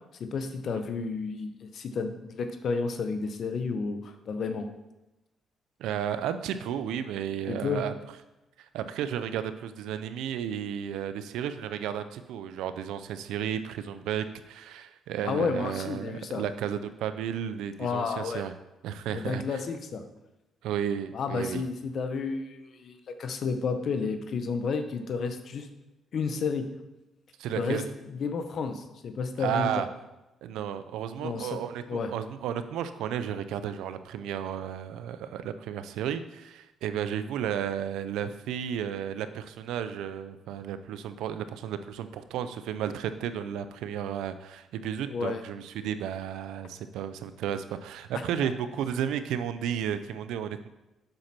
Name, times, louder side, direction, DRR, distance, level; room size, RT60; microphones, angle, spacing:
voice 1, 0.2-4.7 7.5-7.8 15.2-16.4 17.8-18.4 19.1-20.0 21.1-25.7 26.1-26.7 27.6-27.8 28.2-29.8 31.2-31.6 31.9-32.1 45.1-45.4 48.4-48.5, left 5 dB, 60° left, 8 dB, 0.9 m, -31 dB
voice 2, 5.8-7.9 8.6-18.5 18.8-19.6 20.6-21.6 27.4-27.9 29.4-29.9 30.4-50.7, right 9 dB, 90° right, 11 dB, 0.5 m, -33 dB
7.7 x 5.9 x 4.3 m, 0.99 s
cardioid pair, 90°, 0 cm